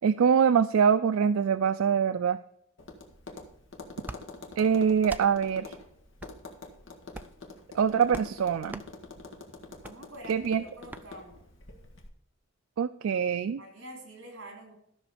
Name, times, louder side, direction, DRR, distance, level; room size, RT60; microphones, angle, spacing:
voice 1, 0.0-2.4 4.6-5.8 7.7-8.8 10.3-10.6 12.8-13.6, right 7 dB, 85° right, 12 dB, 0.4 m, -24 dB
Tap, 2.8-12.1, left 3 dB, 65° left, 1.7 m, -46 dB
sound 1, 4.0-4.2 5.0-5.3 6.2-6.4 7.1-7.4 8.1-8.3 8.7-8.9 9.8-10.0 10.9-11.1, right 2 dB, 10° right, 0.3 m, -41 dB
voice 2, 9.8-11.4 13.6-14.7, right 1 dB, 60° right, 2 dB, 3.4 m, -46 dB
13.0 x 6.1 x 5.0 m, 0.74 s
head